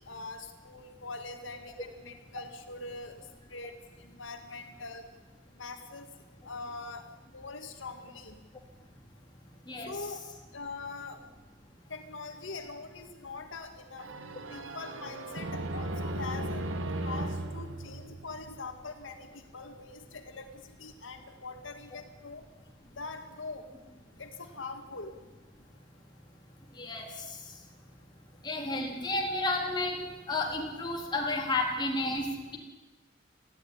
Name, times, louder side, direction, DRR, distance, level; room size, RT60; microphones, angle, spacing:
voice 1, 0.0-3.2 3.5-5.0 5.6-6.1 6.4-7.1 7.3-8.4 9.8-10.2 10.5-11.2 11.9-14.1 14.5-16.6 16.9-20.5 20.8-22.4 23.0-23.7 24.2-25.2, left 3 dB, 85° left, 6 dB, 2.0 m, -43 dB
sound 1, 14.0-18.8, right 1 dB, 90° right, 1.5 m, -36 dB
voice 2, 26.8-27.4 28.4-32.6, left 2 dB, 25° left, 0 dB, 3.8 m, -32 dB
20.0 x 15.0 x 9.9 m, 1.2 s
head